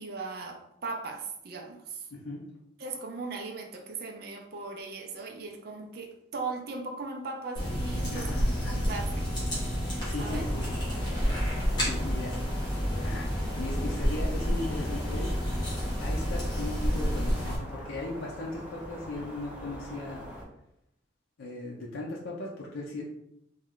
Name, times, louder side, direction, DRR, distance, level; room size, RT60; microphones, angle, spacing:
voice 1, 0.0-2.1 2.8-9.3 9.8-10.4, right 3 dB, 50° right, 3 dB, 0.5 m, -38 dB
voice 2, 2.1-2.4 8.1-9.0 10.0-10.7 11.8-12.4 12.6-12.7 13.0-15.4 16.0-20.3 21.4-23.0, left 2 dB, 90° left, -3 dB, 0.5 m, -38 dB
sound 1, 7.6-17.6, equal, 20° left, 1.1 m, -29 dB
sound 2, 10.2-20.4, equal, 5° right, 0.6 m, -43 dB
3.1 x 2.3 x 3.6 m, 0.79 s
head